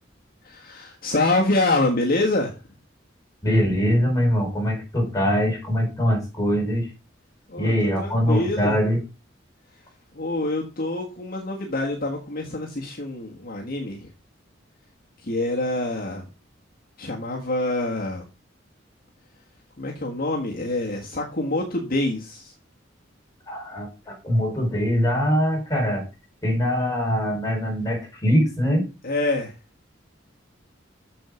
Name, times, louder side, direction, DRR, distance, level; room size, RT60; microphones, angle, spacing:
voice 1, 0.4-2.5 7.5-8.8 10.1-14.1 15.2-16.2 17.0-18.2 19.8-22.5 29.0-29.5, left 2 dB, 50° left, -1 dB, 1.6 m, -26 dB
voice 2, 3.4-6.9 7.6-9.0 23.5-26.1 26.4-28.9, equal, 20° left, -1 dB, 4.9 m, -22 dB
7.6 x 7.0 x 5.0 m, 0.30 s
head